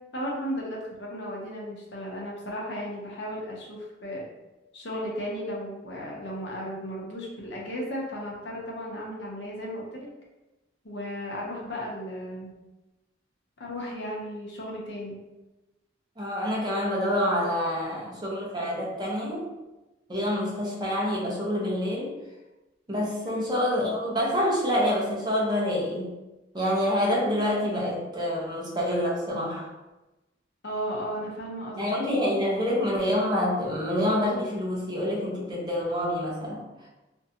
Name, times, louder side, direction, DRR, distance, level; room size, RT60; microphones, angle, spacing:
voice 1, 0.1-4.2 4.7-10.1 10.8-12.5 13.6-15.2 23.2-23.4 30.6-31.8, equal, 65° left, -3 dB, 0.7 m, -35 dB
voice 2, 16.2-19.4 20.1-22.1 22.9-26.1 26.5-29.7 31.8-36.6, left 1 dB, 25° right, -4 dB, 0.6 m, -27 dB
2.6 x 2.2 x 2.7 m, 1.1 s
head